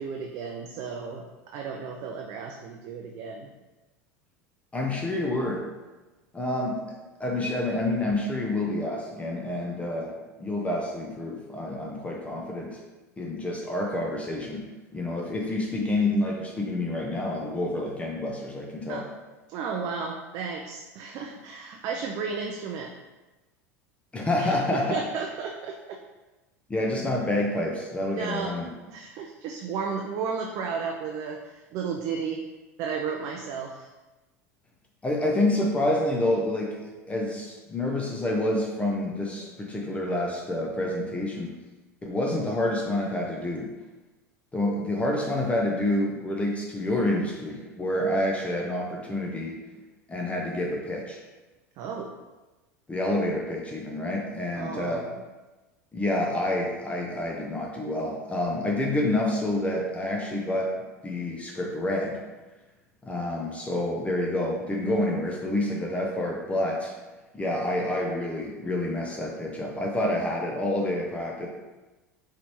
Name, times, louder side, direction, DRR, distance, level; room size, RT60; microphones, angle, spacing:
voice 1, 0.0-3.5 18.9-19.1 19.5-22.9 24.4-26.0 28.1-28.6 28.9-32.4 32.8-33.9 51.8-52.2 54.6-55.1, right 5 dB, 45° right, 2 dB, 0.4 m, -33 dB
voice 2, 4.7-5.6 6.3-6.8 7.2-10.1 10.4-12.8 13.2-14.7 14.9-19.0 24.1-25.0 26.7-28.7 35.0-41.5 42.0-43.7 44.5-49.6 50.1-51.2 52.9-55.0 55.9-60.7 61.0-62.2 63.0-66.9 67.3-71.5, left 1 dB, 15° left, -1 dB, 0.7 m, -28 dB
4.9 x 3.3 x 3.1 m, 1.2 s
figure-of-eight pair, 80°, 9 cm